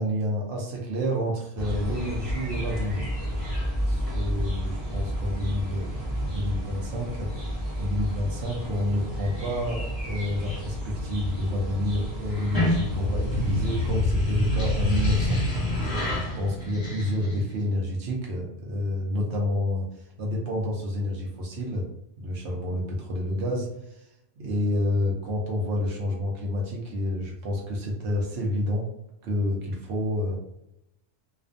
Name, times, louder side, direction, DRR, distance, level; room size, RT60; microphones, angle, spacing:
voice 1, 0.0-3.1 3.9-15.4 16.1-21.9 22.2-24.1 24.4-28.9 29.2-30.4, left 1 dB, 75° right, -1 dB, 0.9 m, -29 dB
sound 1, 1.6-13.9, equal, 10° right, 1.1 m, -32 dB
sound 2, 12.3-17.6, left 1 dB, 20° left, 0.8 m, -26 dB
2.4 x 2.2 x 2.5 m, 0.81 s
omnidirectional pair, 1.2 m